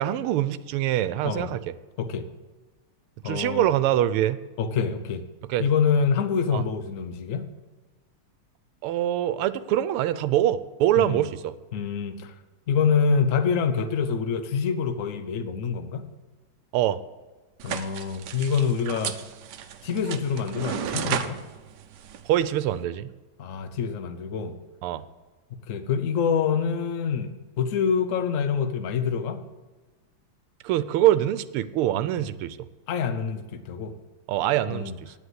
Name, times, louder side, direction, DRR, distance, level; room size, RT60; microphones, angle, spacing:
voice 1, 0.0-1.6 3.2-4.4 5.5-5.6 6.5-6.6 8.8-11.5 16.7-17.0 22.2-23.1 24.8-25.0 30.6-32.6 34.3-35.1, right 12 dB, 90° right, 15 dB, 1.5 m, -24 dB
voice 2, 3.2-3.7 4.6-5.2 5.6-7.5 11.0-11.3 11.7-12.3 12.7-16.1 17.6-19.2 19.8-21.4 23.4-24.6 25.7-29.4 32.2-32.3 32.9-34.0 34.7-35.0, left 6 dB, 55° left, 9 dB, 0.9 m, -26 dB
sound 1, 17.6-22.8, right 9 dB, 65° right, 1.1 m, -34 dB
10.0 x 8.0 x 7.8 m, 1.2 s
omnidirectional pair, 2.4 m